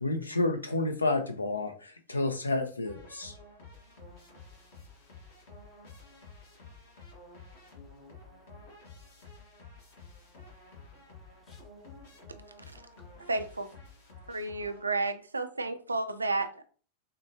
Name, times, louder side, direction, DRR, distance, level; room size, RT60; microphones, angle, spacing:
voice 1, 0.0-3.3, left 2 dB, 80° left, 0.6 m, -30 dB
sound 1, 2.8-15.2, left 3 dB, 55° left, 1.4 m, -51 dB
voice 2, 4.2-6.8 7.7-7.8 8.3-8.5 9.8-10.1 10.6-10.7 11.4-11.7 12.7-13.1, left 3 dB, 20° left, 0.7 m, -69 dB
voice 3, 13.3-13.7 14.3-16.6, right 3 dB, 80° right, 0.4 m, -32 dB
6.3 x 2.2 x 2.8 m
figure-of-eight pair, 90°, 0 cm